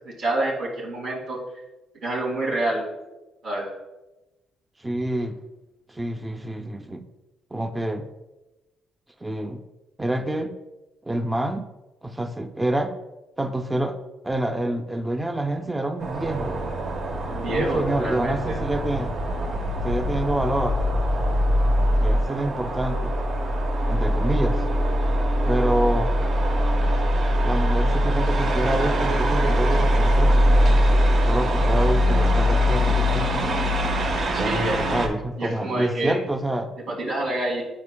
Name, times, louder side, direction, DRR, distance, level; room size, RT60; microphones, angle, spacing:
voice 1, 0.2-1.4 2.0-2.8 3.4-3.7 17.2-18.6 34.3-34.8 35.4-36.2 36.9-37.6, right 1 dB, 80° right, -3 dB, 2.1 m, -27 dB
voice 2, 4.8-5.4 5.9-7.0 7.5-8.1 9.2-9.6 10.0-10.5 11.1-11.7 12.0-12.9 13.4-13.9 14.2-16.6 17.5-19.1 19.8-20.8 22.0-23.1 23.9-24.6 25.5-26.1 27.4-30.3 31.3-33.5 34.4-36.7, right 1 dB, 15° right, 5 dB, 0.4 m, -27 dB
sound 1, 16.0-35.1, equal, 65° right, 1.0 m, -22 dB
9.7 x 4.4 x 2.2 m, 1.1 s
cardioid pair, 90°, 0 cm